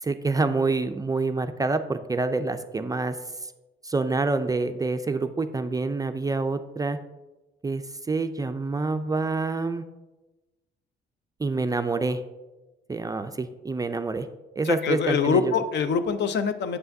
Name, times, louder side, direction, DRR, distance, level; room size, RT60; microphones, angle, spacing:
voice 1, 0.0-3.2 3.4-3.5 3.8-7.0 7.6-9.8 11.4-12.2 12.9-14.3 14.6-15.5, right 3 dB, 20° right, 9 dB, 0.3 m, -27 dB
voice 2, 14.6-16.8, left 6 dB, 60° left, 11 dB, 0.5 m, -24 dB
7.9 x 5.5 x 2.6 m, 1.1 s
cardioid pair, 90°, 20 cm